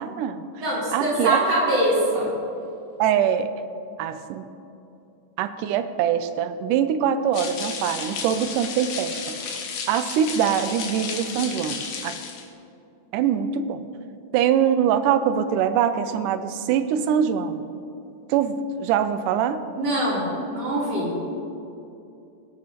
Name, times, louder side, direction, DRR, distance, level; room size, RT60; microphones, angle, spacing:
voice 1, 0.0-0.5 0.9-1.4 3.0-3.5 4.0-4.5 5.4-9.4 9.9-12.2 13.1-13.8 14.3-17.7 18.3-19.6, right 8 dB, 85° right, 11 dB, 2.2 m, -23 dB
voice 2, 0.6-2.3 19.7-21.2, right 1 dB, 50° right, -8 dB, 4.4 m, -23 dB
sound 1, 7.3-12.5, left 6 dB, 75° left, 2.4 m, -33 dB
22.5 x 8.6 x 2.9 m, 2.7 s
omnidirectional pair, 3.6 m